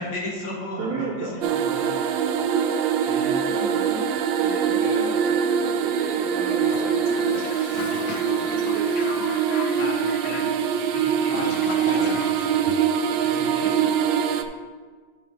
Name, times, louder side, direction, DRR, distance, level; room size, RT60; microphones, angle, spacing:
voice 1, 0.0-2.0 3.0-3.6 9.7-12.1 12.5-12.7 13.1-14.6, left 1 dB, 60° left, -4 dB, 2.3 m, -36 dB
voice 2, 0.8-1.3 3.5-4.1 4.4-7.5 7.9-8.9, right 3 dB, 60° right, -7 dB, 1.9 m, -34 dB
sound 1, 1.4-14.4, right 7 dB, 80° right, 1.2 m, -23 dB
Toilet flush, 6.6-13.5, left 5 dB, 85° left, 1.5 m, -37 dB
9.9 x 8.3 x 2.9 m, 1.5 s
omnidirectional pair, 2.1 m